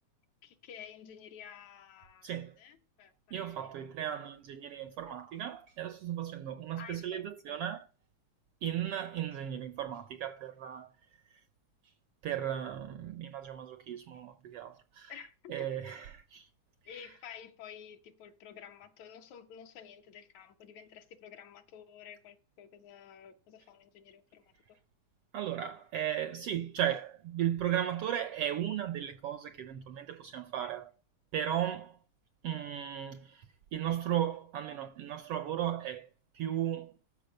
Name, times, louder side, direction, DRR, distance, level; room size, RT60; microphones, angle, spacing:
voice 1, 0.4-2.3 2.6-3.7 6.8-7.7 15.1-15.6 16.9-24.4 30.6-30.7, left 8 dB, 70° left, 2.5 m, -51 dB
voice 2, 2.2-2.6 3.3-7.9 8.6-10.9 11.3-11.4 12.2-15.1 15.5-16.5 17.0-17.1 25.3-30.9 31.3-32.0 32.4-33.5 33.7-36.1 36.3-36.9, right 10 dB, 75° right, 1.4 m, -35 dB
13.5 x 4.8 x 6.6 m
omnidirectional pair, 3.4 m